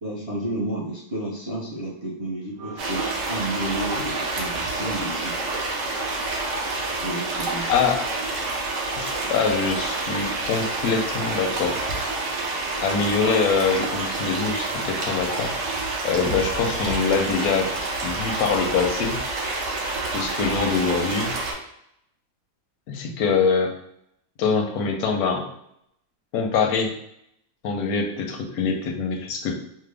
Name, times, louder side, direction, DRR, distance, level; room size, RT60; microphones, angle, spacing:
voice 1, 0.0-5.4 7.0-7.7, right 1 dB, 35° right, -6 dB, 0.4 m, -31 dB
sound 1, 2.6-14.5, right 3 dB, 90° right, 1.3 m, -40 dB
sound 2, 2.8-21.5, right 2 dB, 65° right, 1.0 m, -28 dB
voice 2, 7.7-8.0 8.9-11.8 12.8-15.5 16.0-17.7 18.0-19.2 20.1-21.3 22.9-23.7 24.4-25.5 26.3-26.9 27.6-29.5, left 5 dB, 85° left, 3 dB, 1.1 m, -24 dB
3.3 x 2.0 x 3.4 m, 0.75 s
omnidirectional pair, 1.5 m